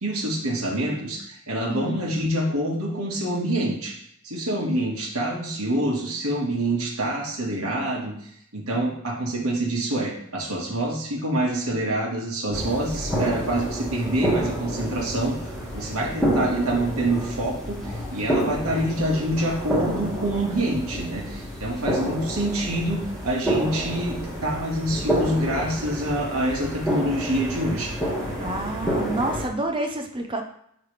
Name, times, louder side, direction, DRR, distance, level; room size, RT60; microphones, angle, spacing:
voice 1, 0.0-4.0 4.2-27.9, right 1 dB, 85° right, -2 dB, 1.7 m, -26 dB
voice 2, 1.7-2.0 28.4-30.4, right 2 dB, 25° right, 4 dB, 0.7 m, -28 dB
sound 1, 12.5-29.5, equal, 5° left, 1.8 m, -29 dB
9.6 x 3.4 x 3.4 m, 0.71 s
head